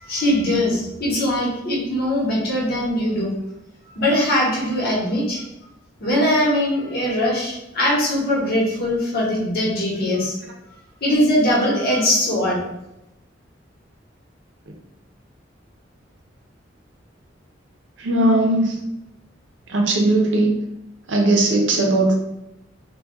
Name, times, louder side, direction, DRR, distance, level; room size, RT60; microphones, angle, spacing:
voice 1, 0.0-3.4 3.9-5.4 6.0-10.4 11.0-12.6, left 1 dB, 55° left, -5 dB, 1.0 m, -21 dB
voice 2, 18.0-18.8 19.7-20.5 21.1-22.2, right 2 dB, 75° right, 1 dB, 0.6 m, -18 dB
2.3 x 2.2 x 3.6 m, 0.88 s
head